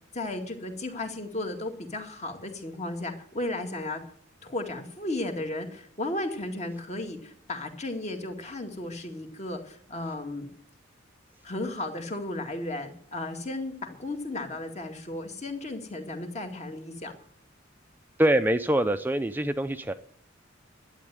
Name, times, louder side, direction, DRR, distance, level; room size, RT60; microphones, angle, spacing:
voice 1, 0.1-4.0 4.4-10.5 11.4-17.1, left 2 dB, 35° left, 5 dB, 2.2 m, -34 dB
voice 2, 18.2-19.9, right 1 dB, 10° right, 8 dB, 0.5 m, -24 dB
12.0 x 9.0 x 9.1 m, 0.62 s
head